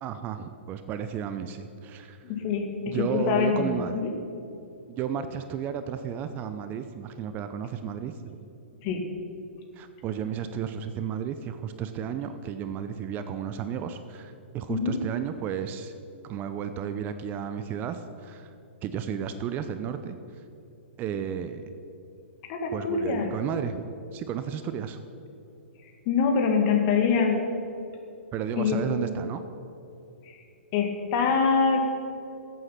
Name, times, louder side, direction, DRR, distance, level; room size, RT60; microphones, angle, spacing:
voice 1, 0.0-2.2 2.9-3.9 4.9-8.4 9.8-15.9 16.2-18.5 18.8-20.2 21.0-21.6 22.7-25.0 28.3-29.4, right 8 dB, 30° right, 9 dB, 0.6 m, -33 dB
voice 2, 2.2-4.1 8.8-9.0 14.7-15.0 22.4-23.3 26.1-27.4 28.6-28.8 30.7-31.9, left 5 dB, 40° left, 3 dB, 2.1 m, -24 dB
14.5 x 8.3 x 5.8 m, 2.7 s
hypercardioid pair, 135°, 7 cm